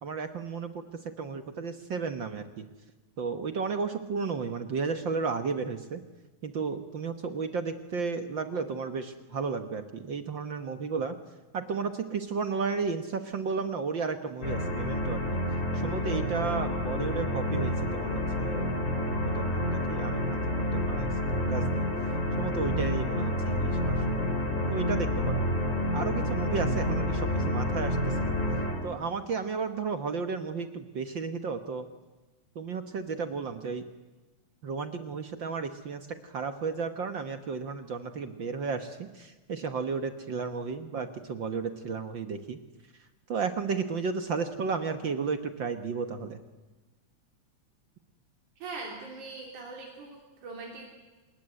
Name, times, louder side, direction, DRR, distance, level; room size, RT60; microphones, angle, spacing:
voice 1, 0.0-2.6 3.2-6.0 6.4-11.2 11.5-15.2 15.7-18.7 19.3-21.8 22.4-24.2 24.7-25.4 25.9-28.4 28.8-31.9 32.5-33.9 34.6-42.6 43.3-46.4, right 5 dB, 50° right, 9 dB, 1.5 m, -33 dB
sound 1, 14.4-28.8, left 1 dB, 25° left, 5.2 m, -29 dB
voice 2, 48.6-50.9, right 3 dB, 85° right, 0 dB, 4.7 m, -41 dB
26.5 x 20.5 x 9.9 m, 1.2 s
omnidirectional pair, 3.4 m